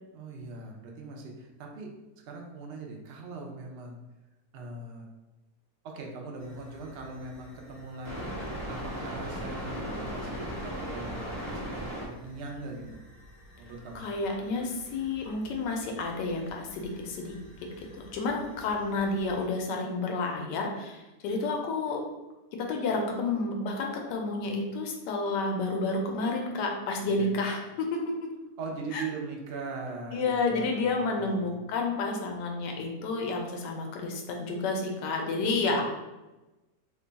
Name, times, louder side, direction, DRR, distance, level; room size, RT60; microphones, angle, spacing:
voice 1, 0.1-1.9 2.3-4.0 4.5-5.1 5.8-8.4 8.7-13.0 13.6-14.1 27.2-27.3 28.6-31.5, right 3 dB, 80° right, 0 dB, 0.5 m, -40 dB
sound 1, 6.4-19.4, equal, 15° right, 0.8 m, -41 dB
voice 2, 13.9-17.3 18.0-22.0 22.5-28.1 28.9-29.0 30.1-35.9, left 3 dB, 90° left, 1 dB, 1.2 m, -30 dB
3.0 x 2.2 x 3.8 m, 1.1 s
omnidirectional pair, 1.8 m